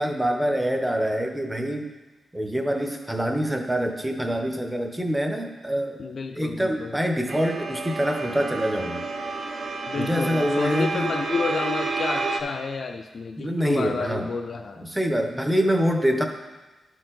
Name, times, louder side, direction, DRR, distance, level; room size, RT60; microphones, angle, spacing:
voice 1, 0.0-1.9 2.3-6.0 6.4-9.1 10.0-11.1 13.4-14.3 14.8-16.2, equal, 5° right, 4 dB, 0.7 m, -25 dB
voice 2, 6.0-7.0 9.9-14.9, left 4 dB, 50° left, 4 dB, 0.4 m, -30 dB
sound 1, 7.3-12.4, right 3 dB, 50° right, 0.6 m, -30 dB
11.5 x 4.6 x 3.8 m, 1.2 s
wide cardioid pair, 145°, 0 cm